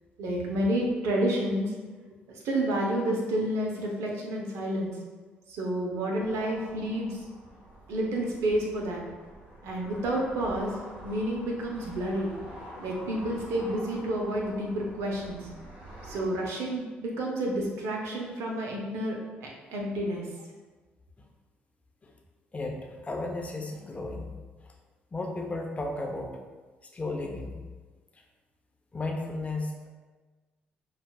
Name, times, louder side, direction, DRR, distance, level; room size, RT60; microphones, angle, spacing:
voice 1, 0.2-1.7 2.3-4.9 5.5-7.2 7.9-9.0 9.6-10.8 11.0-12.3 12.8-15.5 16.0-20.3, right 1 dB, 70° right, -1 dB, 0.7 m, -30 dB
sound 1, 6.2-16.2, right 1 dB, 35° right, 1.4 m, -47 dB
voice 2, 22.5-24.3 24.6-24.7 25.1-26.4 26.8-27.6 28.9-29.9, left 2 dB, 25° left, 1 dB, 0.6 m, -34 dB
5.6 x 2.4 x 2.3 m, 1.3 s
hypercardioid pair, 50°, 5 cm